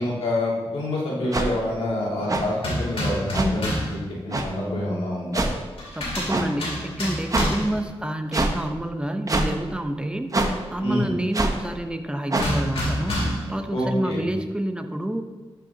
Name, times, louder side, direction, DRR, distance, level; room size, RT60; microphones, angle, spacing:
voice 1, 0.0-5.5 10.8-11.1 13.7-14.3, left 1 dB, 90° left, -4 dB, 2.1 m, -27 dB
sound 1, 1.3-1.5 2.3-2.4 3.3-3.5 4.3-4.5 5.3-5.5 6.3-6.5 7.3-7.5 8.3-8.5 9.3-9.5 10.3-10.5 11.3-11.5 12.3-12.5, right 2 dB, 35° right, 0.9 m, -23 dB
sound 2, 2.6-4.0 5.8-7.8 12.4-13.6, equal, 75° left, 2.5 m, -28 dB
voice 2, 5.9-10.3 10.7-15.2, right 1 dB, 10° right, 6 dB, 0.7 m, -28 dB
12.0 x 5.7 x 2.8 m, 1.3 s
cardioid pair, 65°, 10 cm